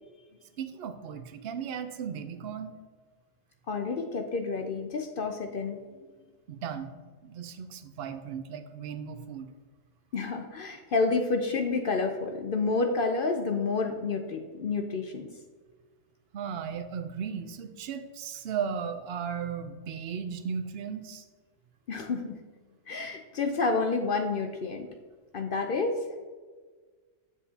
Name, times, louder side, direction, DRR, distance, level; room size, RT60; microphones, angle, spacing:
voice 1, 0.6-2.8 6.5-7.0 7.2-9.5 16.3-21.2, right 7 dB, 60° right, 8 dB, 0.8 m, -36 dB
voice 2, 3.7-6.1 10.1-15.3 21.9-22.4 22.9-24.9 25.3-26.0, left 4 dB, 55° left, 5 dB, 0.6 m, -29 dB
8.0 x 7.4 x 2.8 m, 1.5 s
omnidirectional pair, 1.3 m